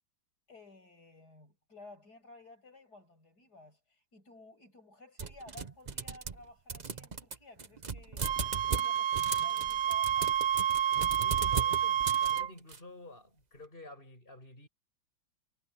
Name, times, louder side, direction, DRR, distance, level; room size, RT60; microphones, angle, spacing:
voice 1, 0.5-8.3 8.7-10.3, left 2 dB, 55° left, 8.3 m, -55 dB
sound 1, 5.2-6.4 6.7-12.8, right 5 dB, 35° right, 0.8 m, -37 dB
Wind instrument woodwind instrument, 8.2-12.5, right 9 dB, 80° right, 1.8 m, -29 dB
voice 2, 11.2-14.7, left 2 dB, 25° left, 7.9 m, -50 dB
omnidirectional pair, 2.1 m